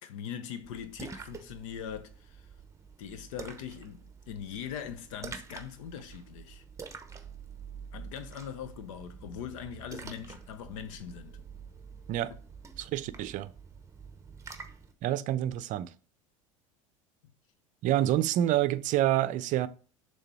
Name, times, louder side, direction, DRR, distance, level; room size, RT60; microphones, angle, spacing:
voice 1, 0.0-2.5 3.0-6.6 7.9-11.4, left 8 dB, 70° left, 1.0 m, -41 dB
Splash splatter, 0.6-14.9, right 5 dB, 15° right, 0.9 m, -47 dB
voice 2, 12.8-13.5 15.0-15.9 17.8-19.7, right 13 dB, 50° right, 0.5 m, -27 dB
6.7 x 3.4 x 4.6 m
hypercardioid pair, 80°, 17 cm